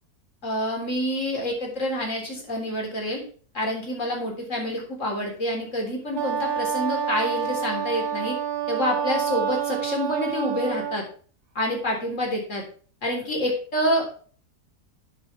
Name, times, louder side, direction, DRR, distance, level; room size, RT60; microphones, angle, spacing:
voice 1, 0.4-3.2 3.5-8.3 8.7-11.0 11.6-12.6 13.0-14.1, left 1 dB, 50° left, 0 dB, 4.0 m, -27 dB
Wind instrument woodwind instrument, 6.1-11.0, right 8 dB, 70° right, 2.5 m, -28 dB
11.5 x 9.5 x 3.4 m, 0.42 s
omnidirectional pair, 1.7 m